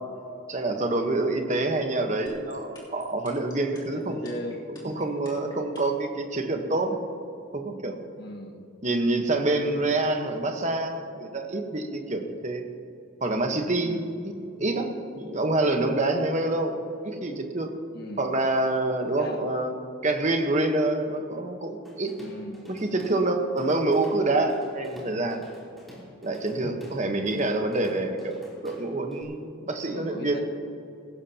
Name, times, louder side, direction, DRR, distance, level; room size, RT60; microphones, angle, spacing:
voice 1, 0.5-4.3 4.8-7.0 7.5-8.0 8.8-12.6 13.2-14.3 14.6-16.8 17.0-17.7 18.2-19.7 20.0-22.1 22.7-25.4 26.2-30.4, right 2 dB, 35° right, 4 dB, 1.1 m, -27 dB
sound 1, 2.3-6.0, left 2 dB, 20° left, 3.1 m, -47 dB
voice 2, 4.1-4.7 8.2-8.6 13.8-14.1 17.9-18.2 19.0-19.5 22.2-22.6 26.6-26.8 29.9-30.4, left 1 dB, 50° left, 2 dB, 1.5 m, -37 dB
Drum kit / Drum, 21.8-23.2 23.6-29.2, equal, ahead, 3.1 m, -49 dB
19.5 x 16.5 x 2.9 m, 2.6 s
head